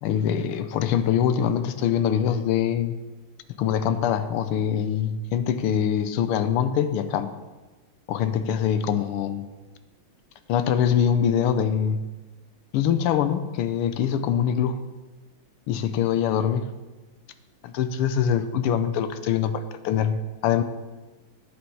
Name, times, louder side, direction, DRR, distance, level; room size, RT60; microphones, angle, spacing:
voice 1, 0.0-3.0 3.6-7.4 8.1-9.5 10.5-12.1 12.7-14.8 15.7-16.7 17.6-20.6, left 8 dB, 90° left, 11 dB, 1.6 m, -24 dB
10.5 x 9.5 x 4.6 m, 1.2 s
omnidirectional pair, 2.4 m